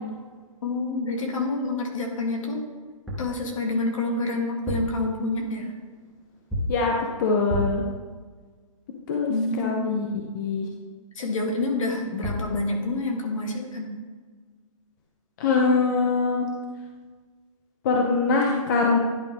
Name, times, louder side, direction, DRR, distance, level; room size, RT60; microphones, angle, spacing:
voice 1, 0.6-2.6 3.2-5.7 9.3-9.9 11.2-13.9, left 2 dB, 65° left, 1 dB, 1.8 m, -28 dB
sound 1, 2.9-3.4 4.5-5.0 6.5-6.9 7.5-7.9 11.9-12.0 12.2-12.6, equal, ahead, 0.9 m, -30 dB
voice 2, 6.7-7.9 9.1-10.1 10.3-10.7 15.4-16.5 17.8-19.0, left 4 dB, 35° left, 0 dB, 0.7 m, -23 dB
11.0 x 4.4 x 3.5 m, 1.4 s
hypercardioid pair, 160°, 18 cm